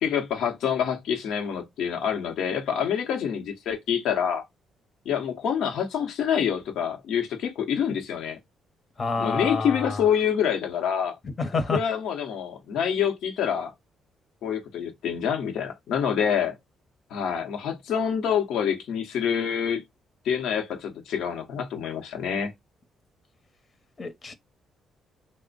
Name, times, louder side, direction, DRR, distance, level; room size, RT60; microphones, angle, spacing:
voice 1, 0.0-4.4 5.0-8.4 9.2-11.2 11.7-13.7 14.4-16.5 17.1-19.8 20.2-22.5, left 8 dB, 80° left, 0.8 m, -26 dB
voice 2, 9.0-10.0 11.4-11.8 24.0-24.4, left 3 dB, 40° left, 0.8 m, -28 dB
3.3 x 2.1 x 3.8 m
cardioid pair, 90°, 0 cm